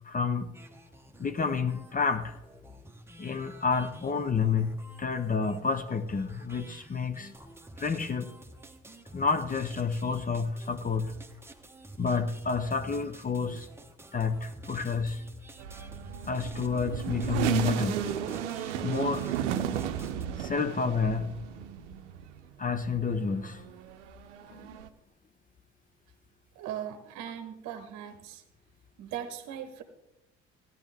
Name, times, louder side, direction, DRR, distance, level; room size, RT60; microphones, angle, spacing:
voice 1, 0.0-0.5 1.2-2.4 3.2-7.3 7.8-8.3 9.1-11.1 12.0-13.7 14.1-15.2 16.3-18.1 18.8-19.3 20.4-21.3 22.6-23.6 24.5-24.7, left 5 dB, 25° left, 0.8 m, -29 dB
sound 1, 0.5-20.3, right 1 dB, 5° right, 1.1 m, -50 dB
sound 2, 15.6-22.5 22.9-24.9, right 10 dB, 75° right, 0.7 m, -34 dB
voice 2, 26.5-28.4 29.0-29.8, right 10 dB, 55° right, 1.0 m, -39 dB
15.0 x 11.0 x 3.4 m
figure-of-eight pair, 50°, 36 cm